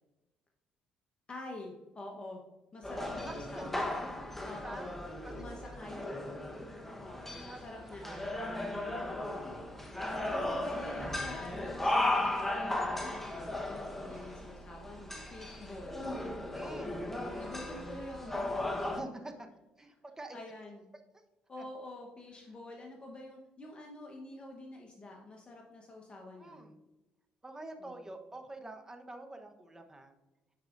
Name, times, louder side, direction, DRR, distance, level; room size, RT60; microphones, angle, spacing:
voice 1, 1.3-2.4 2.7-4.9 5.3-6.4 7.0-8.0 10.3-16.1 16.8-18.7 20.3-20.8 21.5-26.7 27.8-28.1, left 2 dB, 30° left, 0 dB, 1.1 m, -47 dB
sound 1, 2.8-19.0, left 1 dB, 5° left, 1.1 m, -36 dB
voice 2, 2.9-3.6 4.6-5.0 5.2-6.1 7.2-9.3 14.0-14.4 15.2-15.8 16.5-17.0 17.3-17.7 18.8-19.5 19.8-20.4 26.4-26.7 27.4-30.1, right 2 dB, 15° right, 5 dB, 1.0 m, -47 dB
10.0 x 4.8 x 2.6 m, 1.1 s
supercardioid pair, 65°, 3 cm